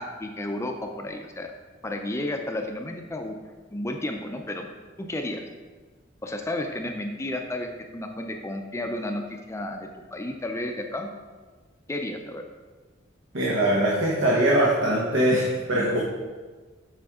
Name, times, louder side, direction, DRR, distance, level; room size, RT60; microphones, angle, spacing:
voice 1, 0.0-1.5 1.8-3.4 3.7-4.7 5.0-5.4 6.2-11.1 11.9-12.4, left 1 dB, 15° left, 4 dB, 0.4 m, -32 dB
voice 2, 13.3-16.0, right 1 dB, 80° right, -4 dB, 1.1 m, -22 dB
7.7 x 5.0 x 3.6 m, 1.4 s
head